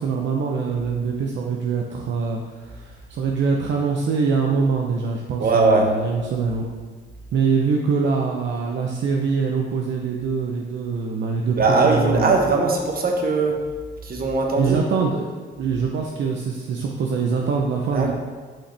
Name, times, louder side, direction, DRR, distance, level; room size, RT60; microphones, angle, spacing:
voice 1, 0.0-6.8 7.3-11.6 11.8-12.3 14.6-15.3 15.6-18.1, right 5 dB, 65° right, 0 dB, 0.7 m, -24 dB
voice 2, 5.4-5.8 11.6-13.6 14.0-14.8 17.9-18.1, right 3 dB, 50° right, 2 dB, 1.3 m, -19 dB
8.8 x 5.4 x 3.3 m, 1.5 s
cardioid pair, 90°, 20 cm